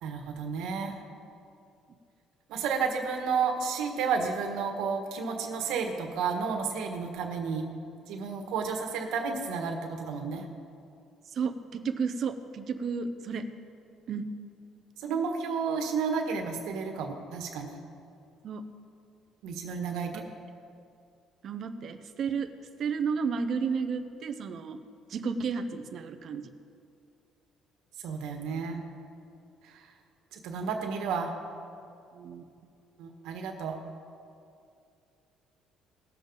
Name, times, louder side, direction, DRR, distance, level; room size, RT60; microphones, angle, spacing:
voice 1, 0.0-0.9 2.5-7.7 8.1-10.4 15.0-17.8 19.4-20.2 28.0-28.8 30.3-31.3 33.0-33.8, right 5 dB, 80° right, 3 dB, 1.5 m, -31 dB
voice 2, 11.3-13.5 14.1-14.3 18.4-18.7 21.4-22.5 22.8-24.8 25.1-26.5 32.1-32.4, right 5 dB, 45° right, 9 dB, 0.7 m, -32 dB
19.5 x 7.2 x 3.9 m, 2.5 s
cardioid pair, 145°, 0 cm